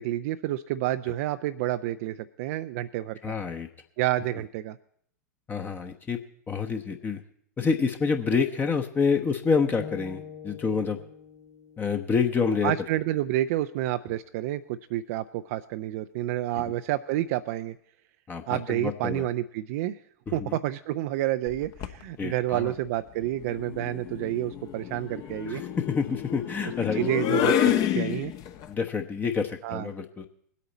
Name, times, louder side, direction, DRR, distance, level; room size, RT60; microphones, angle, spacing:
voice 1, 0.0-3.4 4.0-4.8 12.6-17.8 18.5-20.0 20.3-25.6 26.9-28.3 29.6-29.9, right 14 dB, 55° right, 9 dB, 0.5 m, -29 dB
voice 2, 3.2-3.7 5.5-6.2 6.5-7.2 7.6-11.0 11.8-12.7 18.3-19.3 20.3-20.6 22.2-22.7 25.5-27.1 28.7-30.3, left 5 dB, 20° left, 5 dB, 1.0 m, -27 dB
sound 1, 9.8-13.9, left 5 dB, 75° left, 3.5 m, -46 dB
sound 2, 21.5-22.0 23.4-28.7, left 10 dB, 40° left, 1.1 m, -29 dB
20.0 x 8.4 x 4.1 m, 0.65 s
figure-of-eight pair, 95°, 9 cm